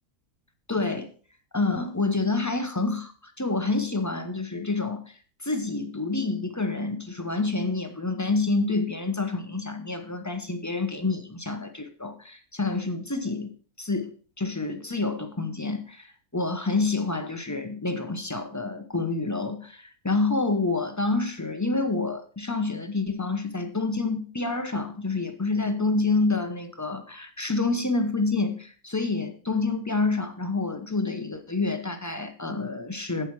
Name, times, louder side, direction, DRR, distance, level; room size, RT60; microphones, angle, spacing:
voice 1, 0.7-1.1 1.5-3.1 3.4-5.1 5.4-13.5 13.8-14.1 14.4-16.1 16.3-33.3, left 3 dB, 15° left, 7 dB, 0.6 m, -28 dB
8.3 x 8.0 x 4.7 m, 0.40 s
omnidirectional pair, 1.6 m